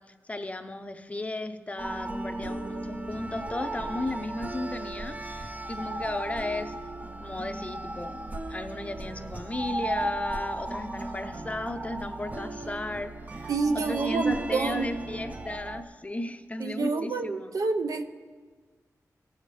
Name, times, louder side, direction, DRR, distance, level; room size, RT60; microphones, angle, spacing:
voice 1, 0.2-6.7 7.2-8.2 8.5-17.5, left 2 dB, 20° left, 8 dB, 0.6 m, -35 dB
sound 1, 1.8-15.8, right 1 dB, 25° right, 0.5 m, -35 dB
voice 2, 13.5-14.9 16.6-18.0, right 4 dB, 70° right, 8 dB, 0.6 m, -28 dB
17.5 x 6.7 x 3.3 m, 1.5 s
wide cardioid pair, 100°, 6 cm